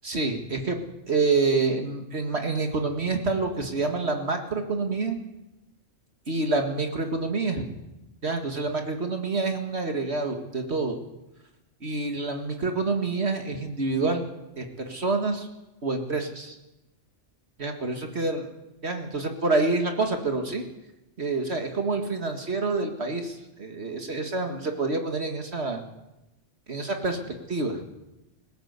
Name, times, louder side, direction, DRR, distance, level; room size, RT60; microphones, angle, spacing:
voice 1, 0.0-0.8 1.1-5.2 6.3-7.7 8.2-11.0 11.8-14.3 14.6-15.5 15.8-16.6 17.6-18.4 18.8-20.6 21.2-25.8 26.7-27.2 27.5-27.8, right 3 dB, 55° right, 4 dB, 2.1 m, -27 dB
20.0 x 17.0 x 8.1 m, 0.97 s
omnidirectional pair, 1.3 m